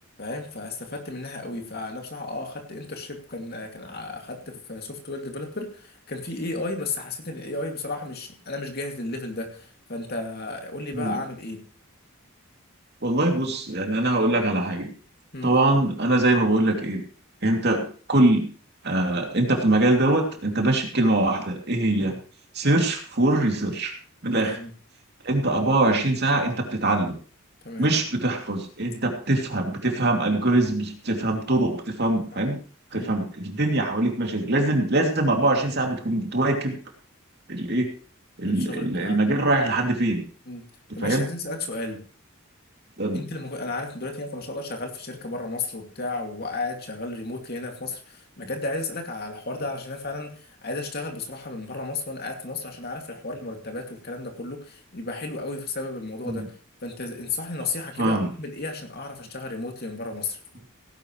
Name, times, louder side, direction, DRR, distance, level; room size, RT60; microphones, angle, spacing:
voice 1, 0.2-11.6 15.3-15.5 22.0-22.2 24.3-24.7 27.6-27.9 32.3-32.4 32.9-33.1 38.4-39.2 40.5-40.6 40.9-42.0 43.1-56.4 56.8-60.4, left 2 dB, 45° left, 3 dB, 2.5 m, -33 dB
voice 2, 13.0-14.9 15.4-17.0 17.4-18.5 18.8-22.1 22.5-23.9 24.2-24.6 25.2-27.2 27.8-32.6 32.9-36.8 37.5-37.9 38.4-40.2 41.0-41.2 43.0-43.2 56.2-56.5 58.0-58.3, right 2 dB, 50° right, 2 dB, 2.8 m, -23 dB
17.5 x 11.0 x 3.2 m, 0.41 s
head